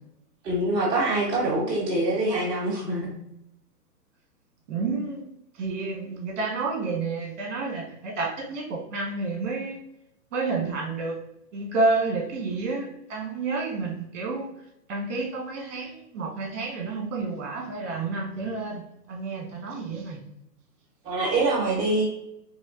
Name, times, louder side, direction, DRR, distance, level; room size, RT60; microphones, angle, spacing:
voice 1, 0.4-3.1 21.0-22.0, right 2 dB, 10° right, -8 dB, 0.6 m, -24 dB
voice 2, 4.7-5.2 5.5-9.8 10.3-11.2 11.5-14.5 14.9-18.8 19.1-20.2, right 3 dB, 50° right, 1 dB, 1.3 m, -30 dB
4.1 x 3.1 x 2.5 m, 0.81 s
hypercardioid pair, 145°, 49 cm